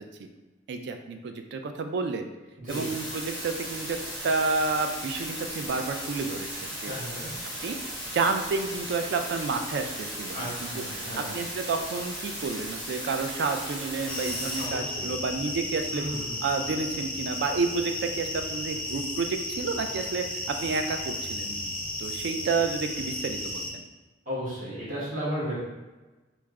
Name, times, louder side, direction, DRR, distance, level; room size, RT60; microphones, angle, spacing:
voice 1, 0.7-2.2 2.7-4.0 4.2-6.9 7.6-7.8 8.1-16.1 16.4-21.7 22.0-23.8, right 4 dB, 60° right, 6 dB, 0.3 m, -30 dB
sound 1, 2.7-14.7, equal, 25° right, 1.3 m, -37 dB
voice 2, 6.8-7.3 10.3-11.4 14.6-15.1 15.9-16.4 24.3-25.6, equal, 45° right, -8 dB, 1.1 m, -34 dB
sound 2, 14.1-23.7, left 1 dB, 5° left, 0.6 m, -34 dB
3.3 x 2.0 x 3.5 m, 1.2 s
head